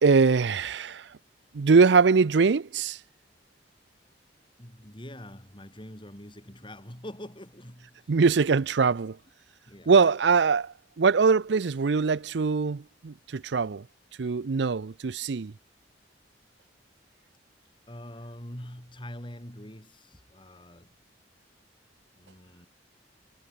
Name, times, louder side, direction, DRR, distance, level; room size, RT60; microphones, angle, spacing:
voice 1, 0.0-1.1 1.5-3.0 8.1-9.2 9.9-13.9 14.2-15.5, right 5 dB, 70° right, 0.5 m, -22 dB
voice 2, 4.6-8.2 9.7-10.0 17.9-21.0 22.2-22.7, left 1 dB, 25° left, 6.6 m, -44 dB
head